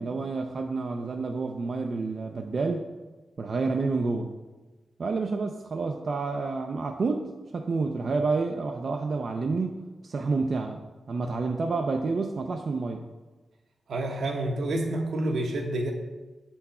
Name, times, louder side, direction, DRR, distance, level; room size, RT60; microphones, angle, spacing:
voice 1, 0.0-2.9 3.4-4.3 5.0-9.8 10.0-10.8 11.1-13.0, right 3 dB, 50° right, 4 dB, 0.4 m, -29 dB
voice 2, 13.9-15.9, right 1 dB, 80° right, 1 dB, 1.1 m, -28 dB
8.0 x 4.5 x 4.2 m, 1.2 s
wide cardioid pair, 125°, 0 cm